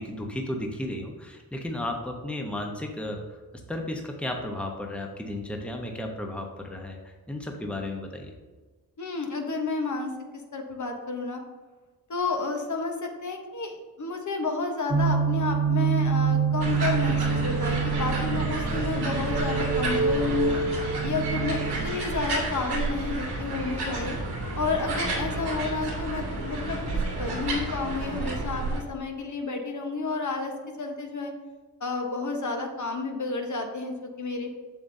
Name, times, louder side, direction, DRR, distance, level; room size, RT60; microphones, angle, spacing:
voice 1, 0.0-3.4 3.7-8.3, left 1 dB, 5° left, 2 dB, 0.9 m, -34 dB
voice 2, 9.0-11.4 12.1-20.6 21.0-24.2 24.5-31.3 31.8-34.5, left 4 dB, 50° left, 3 dB, 1.1 m, -31 dB
sound 1, 14.9-22.0, right 5 dB, 35° right, 1.0 m, -26 dB
sound 2, 16.6-28.8, right 2 dB, 90° right, 2.2 m, -31 dB
7.1 x 6.8 x 2.7 m, 1.3 s
cardioid pair, 70°, 39 cm